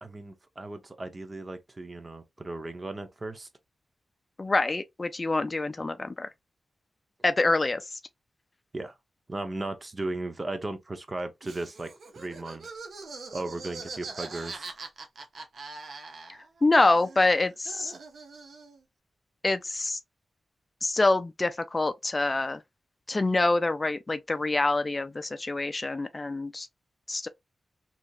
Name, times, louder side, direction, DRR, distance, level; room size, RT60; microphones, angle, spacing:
voice 1, 0.0-3.5 8.7-8.9 9.3-12.7 13.3-14.7, right 2 dB, 35° right, 0.6 m, -36 dB
voice 2, 4.4-6.3 7.2-7.8 16.6-17.9 19.4-20.0 20.8-22.6 23.1-26.7 27.1-27.3, left 2 dB, 35° left, 0.4 m, -26 dB
Laughter, 11.4-16.6 16.9-18.8, right 4 dB, 70° right, 0.6 m, -43 dB
2.8 x 2.6 x 2.3 m
cardioid pair, 55°, 0 cm